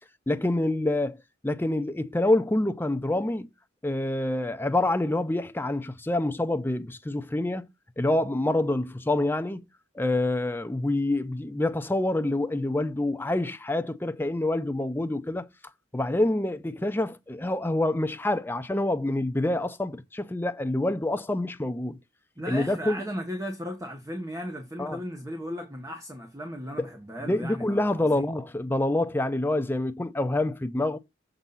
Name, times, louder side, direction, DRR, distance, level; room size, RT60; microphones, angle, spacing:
voice 1, 0.3-1.2 1.4-3.5 3.8-7.6 8.0-9.6 10.0-15.5 15.9-22.0 22.5-23.0 24.8-25.0 27.3-31.0, left 1 dB, 10° left, 0.5 m, -27 dB
voice 2, 22.4-28.3, equal, 15° right, 1.1 m, -36 dB
7.1 x 4.0 x 5.5 m
head